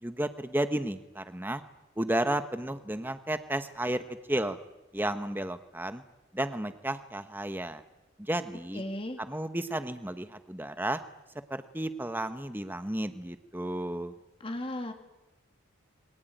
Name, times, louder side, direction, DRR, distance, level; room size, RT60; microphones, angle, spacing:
voice 1, 0.0-1.6 2.0-4.0 4.3-4.6 4.9-6.0 6.3-7.8 8.2-8.8 9.2-11.0 11.5-14.1, right 1 dB, 10° right, 10 dB, 1.1 m, -32 dB
voice 2, 8.7-9.2 14.4-14.9, left 1 dB, 25° left, 5 dB, 2.3 m, -35 dB
28.5 x 22.5 x 9.3 m, 1.0 s
head